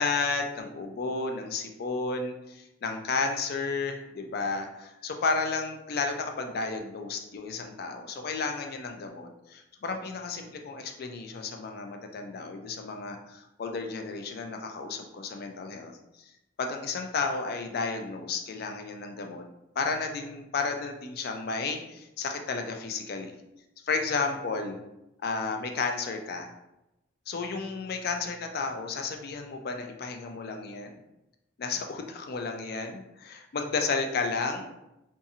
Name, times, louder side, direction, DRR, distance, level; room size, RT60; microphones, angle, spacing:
voice 1, 0.0-15.9 16.2-16.3 16.6-19.4 19.8-23.3 23.8-24.8 25.2-26.5 27.3-31.0 31.6-34.7, left 4 dB, 55° left, 4 dB, 0.4 m, -32 dB
2.6 x 2.4 x 2.7 m, 0.90 s
head